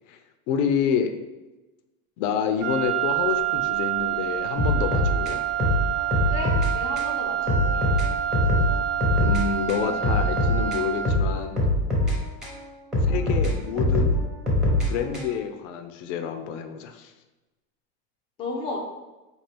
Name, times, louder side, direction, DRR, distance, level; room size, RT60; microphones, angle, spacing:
voice 1, 0.5-1.1 2.2-5.4 9.2-11.6 13.0-14.2 14.8-17.1, left 7 dB, 80° left, 7 dB, 0.5 m, -28 dB
Wind instrument woodwind instrument, 2.6-11.3, right 12 dB, 55° right, 0.6 m, -28 dB
sound 1, 4.6-6.7 7.0-7.1 7.5-9.4 9.7-12.6 12.9-15.5, left 1 dB, ahead, 0.7 m, -23 dB
voice 2, 6.3-7.9 18.4-18.8, left 2 dB, 15° left, 0 dB, 0.3 m, -33 dB
4.3 x 2.4 x 3.3 m, 1.1 s
supercardioid pair, 150°, 36 cm